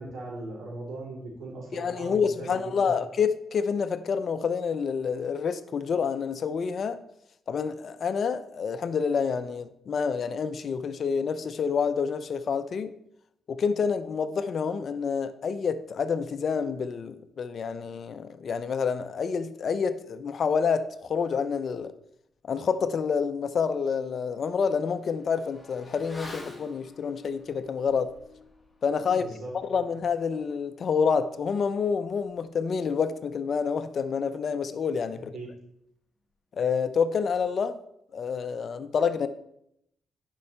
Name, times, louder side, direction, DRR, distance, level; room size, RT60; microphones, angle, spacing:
voice 1, 0.0-3.0 29.1-29.8 35.1-35.5, right 2 dB, 65° right, 3.9 m, -39 dB
voice 2, 1.7-7.0 7.5-12.9 13.5-21.9 22.5-28.1 28.8-29.3 29.7-35.3 36.5-37.8 38.1-39.3, left 6 dB, 55° left, 0.6 m, -28 dB
Motorcycle / Accelerating revving vroom, 23.8-33.6 33.8-33.9, left 2 dB, 15° left, 1.8 m, -50 dB
10.5 x 5.4 x 4.4 m
cardioid pair, 80°, 0 cm